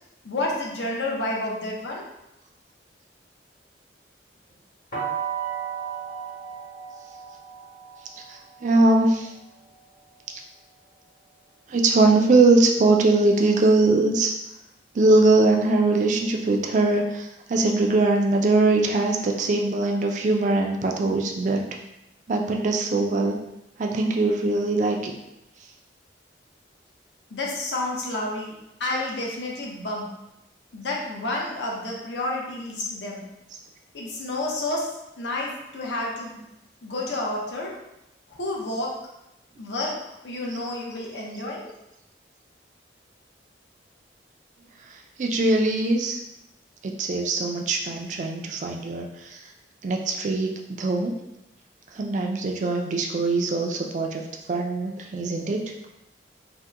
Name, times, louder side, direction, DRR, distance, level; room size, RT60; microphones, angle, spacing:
voice 1, 0.2-2.0 27.3-28.5 28.8-30.1 30.7-33.2 33.9-34.8 35.2-36.4 36.8-37.7 38.4-38.9 39.6-39.9 40.2-41.8, left 2 dB, 75° left, -2 dB, 0.7 m, -30 dB
sound 1, 4.9-10.8, right 7 dB, 55° left, 1.3 m, -35 dB
voice 2, 8.3-9.3 11.7-14.3 14.9-21.6 22.3-23.4 23.8-25.1 45.2-46.2 46.8-49.4 49.8-50.5 50.8-51.1 51.9-54.2 54.5-55.6, right 2 dB, 40° right, 2 dB, 0.3 m, -21 dB
2.8 x 2.1 x 3.4 m, 0.88 s
head